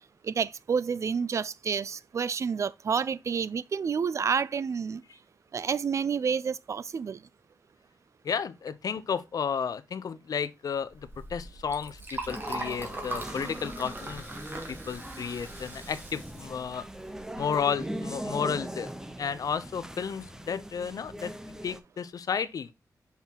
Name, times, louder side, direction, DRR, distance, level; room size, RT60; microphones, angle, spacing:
voice 1, 0.2-5.0 5.5-7.2, right 6 dB, 50° right, 0.4 m, -29 dB
voice 2, 8.2-14.3 14.7-16.9 17.4-18.9 19.2-21.3 21.6-22.7, left 7 dB, 70° left, 0.7 m, -32 dB
Liquid, 10.9-17.6, right 2 dB, 30° right, 2.0 m, -40 dB
sound 1, 12.3-21.8, right 1 dB, 10° right, 0.7 m, -40 dB
5.9 x 5.5 x 2.9 m
wide cardioid pair, 115°, 7 cm